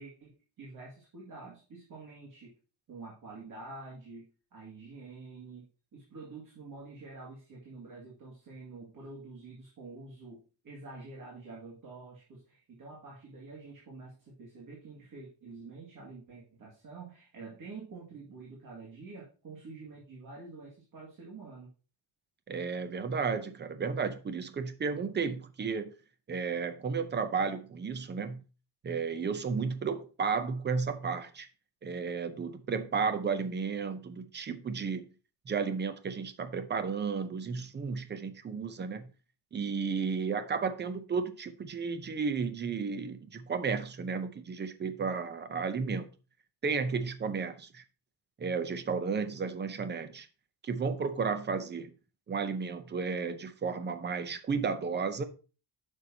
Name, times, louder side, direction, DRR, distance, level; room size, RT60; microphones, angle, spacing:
voice 1, 0.0-2.5 2.9-5.7 5.9-21.7, right 3 dB, 45° right, 2.2 m, -47 dB
voice 2, 22.5-25.9 26.3-28.4 28.8-31.5 31.8-35.1 35.5-39.1 39.5-46.1 46.6-47.8 48.4-50.3 50.6-51.9 52.3-55.2, right 5 dB, 25° right, 0.6 m, -33 dB
9.2 x 6.4 x 2.8 m
cardioid pair, 170°, 44 cm